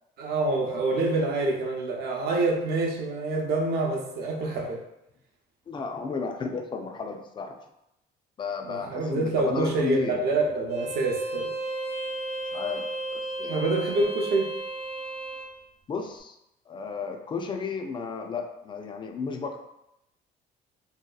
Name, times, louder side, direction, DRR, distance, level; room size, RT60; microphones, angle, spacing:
voice 1, 0.2-4.8 8.6-11.5 13.5-14.5, right 2 dB, 70° right, 1 dB, 0.6 m, -26 dB
voice 2, 5.7-7.5 8.4-10.2 12.5-12.9 13.1-13.6 15.9-16.4 16.7-19.6, left 5 dB, 30° left, 4 dB, 0.3 m, -33 dB
Bowed string instrument, 10.7-15.5, right 2 dB, 80° left, 1.0 m, -34 dB
2.7 x 2.2 x 2.2 m, 0.84 s
cardioid pair, 110°, 17 cm